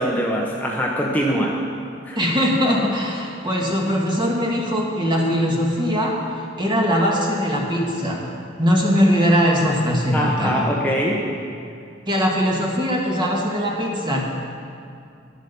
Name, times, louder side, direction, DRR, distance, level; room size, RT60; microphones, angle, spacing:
voice 1, 0.0-1.6 2.0-2.2 10.1-11.2, equal, 10° left, -2 dB, 0.9 m, -22 dB
voice 2, 2.1-8.2 8.6-10.6 12.1-14.2, equal, 25° right, -2 dB, 1.7 m, -21 dB
11.5 x 8.0 x 6.8 m, 2.4 s
head